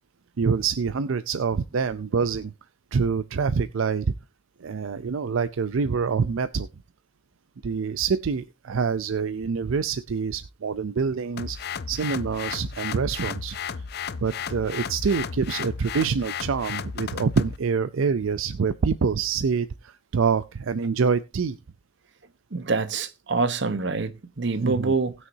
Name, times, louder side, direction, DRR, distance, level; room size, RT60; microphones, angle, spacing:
voice 1, 0.4-2.5 2.9-4.1 4.6-6.7 7.6-11.6 11.9-13.6 14.2-21.6 24.6-24.9, right 5 dB, 80° right, 0.5 m, -26 dB
sound 1, 11.4-17.6, left 6 dB, 50° left, 0.5 m, -34 dB
voice 2, 22.5-25.1, right 4 dB, 60° right, 1.0 m, -26 dB
19.0 x 6.4 x 2.7 m
head